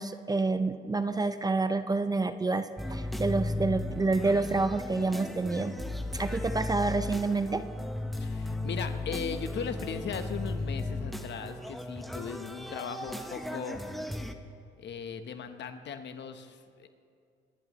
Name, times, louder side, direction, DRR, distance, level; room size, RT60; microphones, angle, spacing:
voice 1, 0.0-5.8 6.1-7.6, right 3 dB, 20° right, 10 dB, 0.5 m, -28 dB
sound 1, 2.8-14.3, left 1 dB, ahead, 0.9 m, -36 dB
voice 2, 8.2-13.8 14.8-16.9, left 6 dB, 65° left, 8 dB, 1.1 m, -38 dB
24.5 x 11.0 x 3.2 m, 2.3 s
cardioid pair, 90°, 20 cm